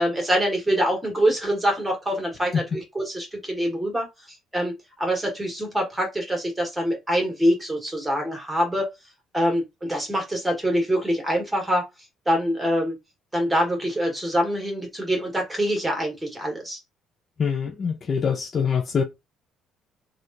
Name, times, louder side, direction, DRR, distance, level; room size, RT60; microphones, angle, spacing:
voice 1, 0.0-4.1 4.5-8.9 9.3-11.9 12.2-12.9 13.3-16.8, equal, 10° right, 1.4 m, -25 dB
voice 2, 17.4-19.0, left 6 dB, 35° left, 0.4 m, -24 dB
3.3 x 2.4 x 2.7 m
cardioid pair, 125°, 0 cm